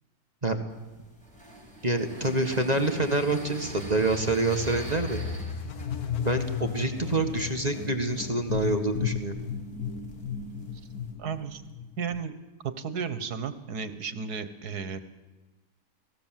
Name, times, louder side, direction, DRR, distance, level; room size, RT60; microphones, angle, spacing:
sound 1, 0.7-11.1, left 2 dB, 5° left, 6.3 m, -41 dB
voice 1, 1.8-5.2 6.2-9.4, right 2 dB, 25° right, 5 dB, 1.7 m, -27 dB
sound 2, 5.4-12.2, left 8 dB, 70° left, 1.6 m, -35 dB
voice 2, 11.2-11.6 12.0-12.4 12.6-15.0, right 6 dB, 80° right, 11 dB, 1.8 m, -33 dB
29.5 x 19.5 x 7.5 m, 1.2 s
omnidirectional pair, 1.6 m